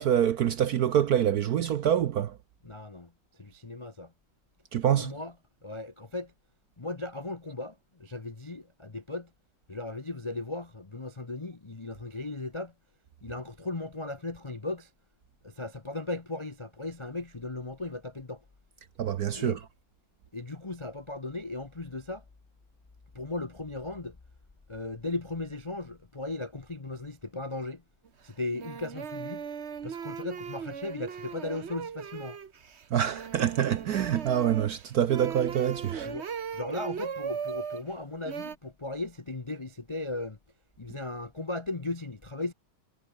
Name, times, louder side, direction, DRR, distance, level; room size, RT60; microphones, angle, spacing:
voice 1, 0.0-2.4 4.7-5.1 19.0-19.6 32.9-36.1, right 10 dB, 60° right, 1.0 m, -26 dB
voice 2, 2.6-4.1 4.9-5.3 5.6-6.3 6.8-9.3 9.7-12.7 13.2-14.9 15.4-18.4 19.3-19.6 20.3-22.2 23.1-24.2 24.7-27.8 28.2-29.4 29.8-32.4 36.0-36.3 36.5-40.4 40.8-42.5, left 2 dB, 35° left, 0.4 m, -37 dB
sound 1, 28.0-28.1 28.5-37.8 38.2-38.5, right 7 dB, 40° right, 1.1 m, -38 dB
omnidirectional pair, 2.3 m